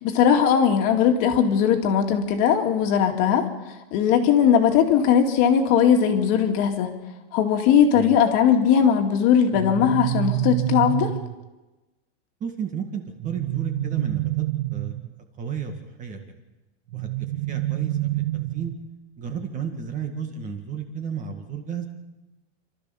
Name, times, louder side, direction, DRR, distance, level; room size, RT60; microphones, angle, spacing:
voice 1, 0.0-3.5 3.9-6.9 7.3-11.1, left 8 dB, 40° left, 4 dB, 2.3 m, -19 dB
sound 1, 9.5-11.5 13.2-15.2 16.9-18.9, right 20 dB, 75° right, 0.7 m, -27 dB
voice 2, 12.4-14.4 14.7-14.9 15.4-15.7 16.0-16.4 16.9-18.7 19.2-21.8, right 7 dB, 20° right, 5 dB, 2.0 m, -32 dB
29.0 x 13.0 x 7.1 m, 1.1 s
supercardioid pair, 165°, 34 cm